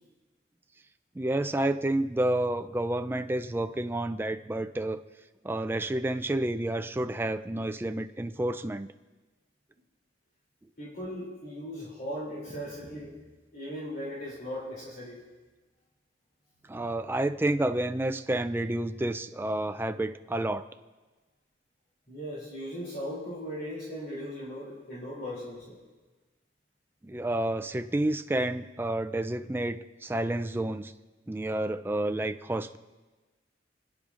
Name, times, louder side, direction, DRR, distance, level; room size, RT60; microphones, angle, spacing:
voice 1, 1.2-5.0 5.4-8.9 16.7-20.7 27.0-30.9 31.3-32.8, right 1 dB, 10° right, 9 dB, 0.3 m, -30 dB
voice 2, 10.8-13.2 13.5-15.2 22.1-25.8, equal, 50° left, -5 dB, 3.0 m, -38 dB
29.5 x 10.0 x 2.5 m, 1.2 s
head